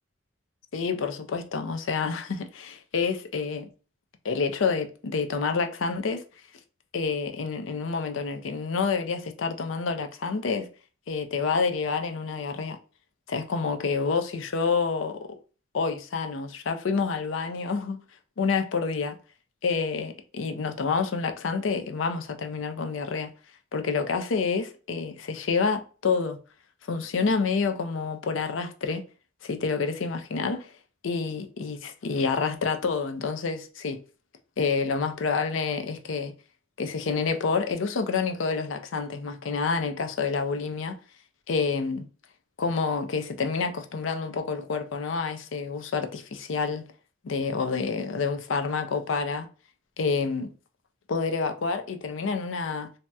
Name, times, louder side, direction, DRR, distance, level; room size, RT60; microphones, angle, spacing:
voice 1, 0.7-3.7 4.2-6.2 6.9-10.7 11.1-12.8 13.3-15.4 15.7-18.0 18.4-19.2 19.6-23.3 23.7-26.4 26.9-29.0 29.4-30.7 31.0-34.0 34.6-36.3 36.8-41.0 41.5-42.1 42.6-46.9 47.2-49.5 50.0-50.5 51.1-52.9, left 5 dB, 80° left, 0.5 m, -28 dB
2.8 x 2.0 x 3.4 m
head